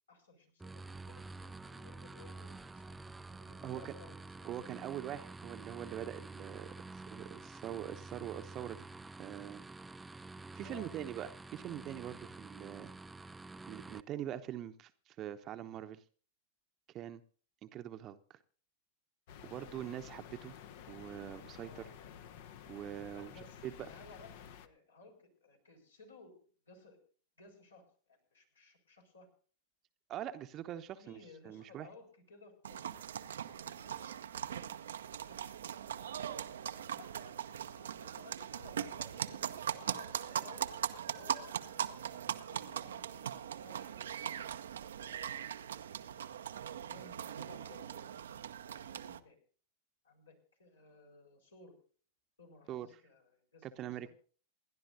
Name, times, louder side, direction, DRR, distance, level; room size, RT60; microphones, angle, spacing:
voice 1, 0.1-3.0 3.4-4.5 10.6-10.9 21.6-22.2 23.1-26.4 26.7-27.0 27.4-29.3 31.0-33.0 33.5-34.6 34.9-35.4 36.2-39.4 39.8-40.8 41.1-42.2 42.5-44.6 45.0-45.2 45.5-45.8 46.6-48.1 48.6-49.4 50.0-51.8 52.4-54.1, left 3 dB, 70° left, 2 dB, 5.0 m, -58 dB
sound 1, 0.6-14.0, right 3 dB, 10° right, 0.6 m, -49 dB
voice 2, 3.6-3.9 4.4-6.7 6.9-8.9 9.2-9.6 10.5-12.9 13.7-16.0 16.9-17.2 17.6-18.4 19.4-20.5 20.9-21.8 22.7-23.3 23.6-23.9 30.1-31.9 52.7-52.9 53.6-54.1, right 11 dB, 35° right, 10 dB, 0.9 m, -43 dB
sound 2, 19.3-24.7, left 9 dB, 50° left, 1.1 m, -52 dB
sound 3, 32.6-49.2, right 9 dB, 65° right, 0.7 m, -40 dB
27.5 x 11.5 x 2.7 m, 0.42 s
figure-of-eight pair, 90°, 0 cm